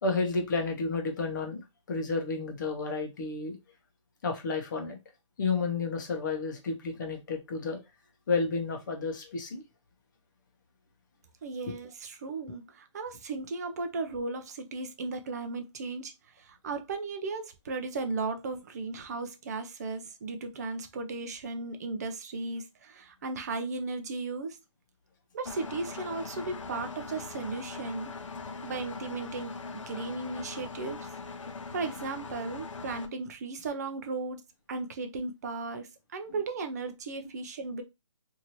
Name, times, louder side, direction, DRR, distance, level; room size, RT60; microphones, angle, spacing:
voice 1, 0.0-3.6 4.2-5.0 5.4-7.8 8.3-9.6 28.5-28.6, left 4 dB, 40° left, 0.8 m, -31 dB
voice 2, 11.4-16.1 16.4-24.6 25.3-28.1 28.6-29.6 29.9-31.1 31.7-34.4 34.7-37.8, right 3 dB, 35° right, 0.5 m, -36 dB
Engine, 25.4-33.1, left 4 dB, 80° left, 0.6 m, -41 dB
2.8 x 2.7 x 2.9 m
hypercardioid pair, 160°, 16 cm